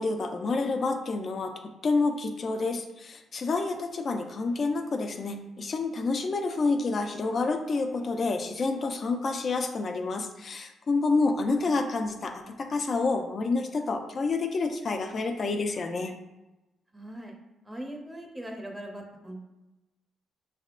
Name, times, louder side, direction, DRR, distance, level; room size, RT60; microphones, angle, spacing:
voice 1, 0.0-1.5 1.8-16.1, left 3 dB, 40° left, 6 dB, 0.5 m, -28 dB
voice 2, 16.9-17.3 17.6-19.4, right 1 dB, 10° right, 0 dB, 0.7 m, -40 dB
6.3 x 3.4 x 2.4 m, 1.0 s
cardioid pair, 120°, 0 cm